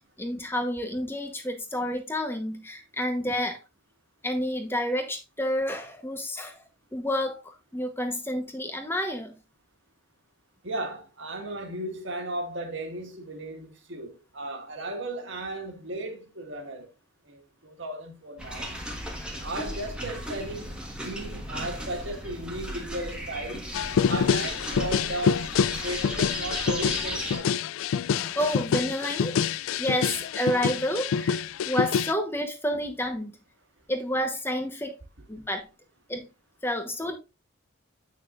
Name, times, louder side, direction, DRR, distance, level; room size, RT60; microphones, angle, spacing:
voice 1, 0.2-3.6 4.2-6.6 6.9-9.3 19.2-19.3 28.1-29.3 29.8-33.4 33.9-35.0 35.3-35.7 36.1-36.3 36.6-37.2, equal, 10° left, 1.1 m, -29 dB
voice 2, 10.6-16.9 17.2-18.8 19.4-23.7 24.1-25.5 25.8-27.5, right 1 dB, 55° right, 1.9 m, -35 dB
sound 1, 18.4-27.4, equal, 5° right, 1.5 m, -36 dB
sound 2, 23.7-32.1, left 7 dB, 70° left, 0.3 m, -27 dB
8.8 x 6.3 x 2.5 m
head